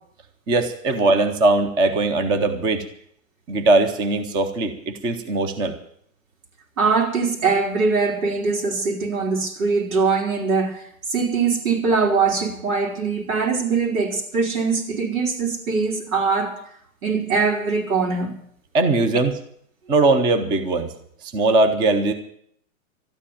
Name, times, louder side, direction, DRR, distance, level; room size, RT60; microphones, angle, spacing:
voice 1, 0.5-2.9 3.5-5.8 18.7-19.4 19.9-20.9 21.2-22.1, right 2 dB, 10° right, 0.6 m, -20 dB
voice 2, 6.8-10.8 11.1-16.6 17.0-18.3, right 4 dB, 90° right, 5.0 m, -22 dB
13.0 x 10.0 x 8.5 m
hypercardioid pair, 160°, 41 cm